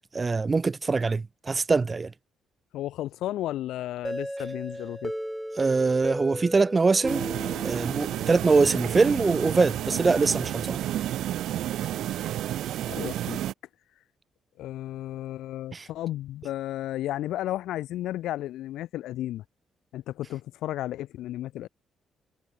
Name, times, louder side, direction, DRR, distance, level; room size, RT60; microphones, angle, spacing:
voice 1, 0.1-2.1 5.6-7.3 7.6-10.8 15.7-15.9, right 4 dB, 30° right, 1.9 m, -23 dB
voice 2, 2.7-5.1 12.9-13.4 14.6-19.4 19.9-21.7, left 14 dB, 85° left, 1.5 m, -33 dB
sound 1, 4.0-8.7, equal, ahead, 2.5 m, -36 dB
sound 2, 7.1-13.5, right 12 dB, 80° right, 3.0 m, -31 dB
cardioid pair, 90°, 0 cm